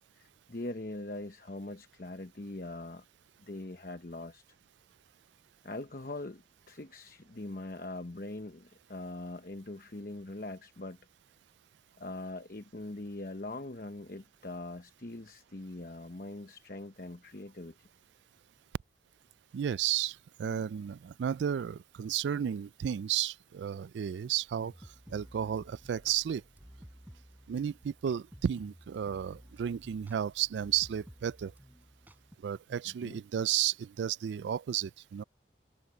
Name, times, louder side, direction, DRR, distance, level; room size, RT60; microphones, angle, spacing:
voice 1, 0.1-3.0 3.4-4.4 5.6-11.0 12.0-17.8 33.0-33.2, left 2 dB, 50° left, 1.0 m, -42 dB
voice 2, 19.5-24.7 25.1-26.4 27.5-31.5 32.4-35.2, right 9 dB, 80° right, 0.3 m, -33 dB
sound 1, 24.6-32.4, equal, 10° right, 6.4 m, -54 dB
head